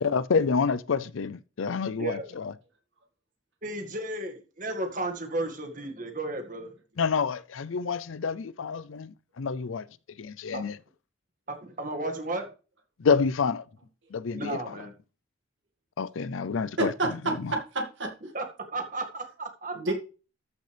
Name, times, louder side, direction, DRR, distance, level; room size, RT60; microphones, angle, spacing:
voice 1, 0.0-2.5 7.0-9.9 10.2-10.8 13.0-13.6 14.1-14.9 16.0-17.6, left 5 dB, 75° left, 0.5 m, -28 dB
voice 2, 3.6-6.7 10.5-10.6 11.5-12.4 14.3-14.9 18.3-18.5 18.7-19.9, right 2 dB, 40° right, 1.9 m, -33 dB
voice 3, 16.8-18.1 19.7-19.9, right 2 dB, 65° right, 2.2 m, -29 dB
13.5 x 6.6 x 3.4 m
head